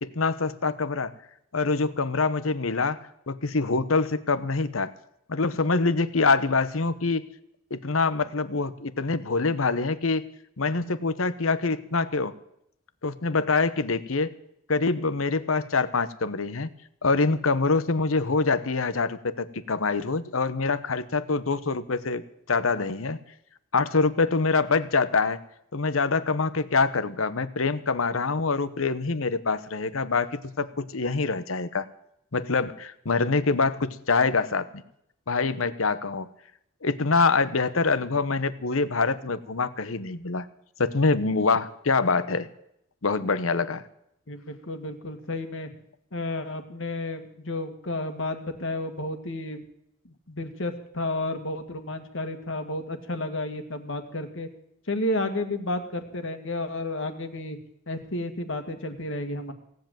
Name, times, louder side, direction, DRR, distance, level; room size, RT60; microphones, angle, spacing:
voice 1, 0.0-1.1 1.5-3.0 3.3-4.9 5.3-7.3 7.7-10.3 10.6-12.3 13.0-14.3 14.7-16.7 17.0-22.2 22.5-23.2 23.7-25.4 25.7-31.9 32.3-34.7 35.3-36.3 36.8-40.5 40.8-42.5 43.0-43.8, left 4 dB, 85° left, 14 dB, 1.0 m, -25 dB
voice 2, 44.3-45.7 46.1-49.6 50.0-54.5 54.9-57.6 57.9-59.5, left 2 dB, 65° left, 7 dB, 2.1 m, -32 dB
17.5 x 8.0 x 9.1 m, 0.75 s
head